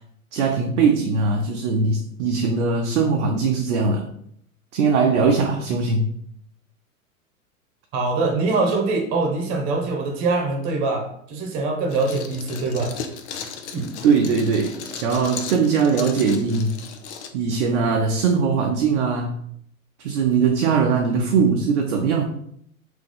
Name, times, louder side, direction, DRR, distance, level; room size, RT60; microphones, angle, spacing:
voice 1, 0.3-4.0 4.7-6.1 14.0-16.8 17.3-19.4 20.0-22.2, right 5 dB, 55° right, 2 dB, 0.6 m, -20 dB
voice 2, 7.9-13.0 13.7-13.9, right 3 dB, 40° right, 2 dB, 1.1 m, -23 dB
sound 1, 11.9-17.3, left 6 dB, 50° left, 0.6 m, -36 dB
3.7 x 2.9 x 3.7 m, 0.69 s
figure-of-eight pair, 100°, 43 cm